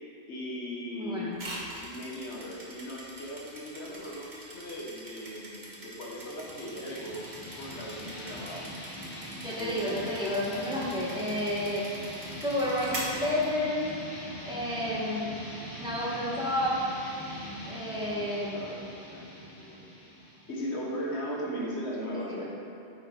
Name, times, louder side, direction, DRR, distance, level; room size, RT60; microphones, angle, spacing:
voice 1, 0.3-1.3 1.8-7.2 7.6-8.7 9.6-10.1 17.5-18.8 19.1-19.8 20.5-22.4, equal, 75° left, -3 dB, 1.5 m, -38 dB
voice 2, 0.9-1.4 9.4-11.8 12.4-13.9 14.4-15.3 15.8-16.8 17.7-18.6 22.3-22.4, left 1 dB, 5° right, -8 dB, 1.6 m, -31 dB
sound 1, 1.3-14.0, right 1 dB, 45° right, 1.4 m, -44 dB
sound 2, 6.1-21.5, equal, 20° left, 1.8 m, -42 dB
9.2 x 5.1 x 4.1 m, 2.6 s
omnidirectional pair, 1.1 m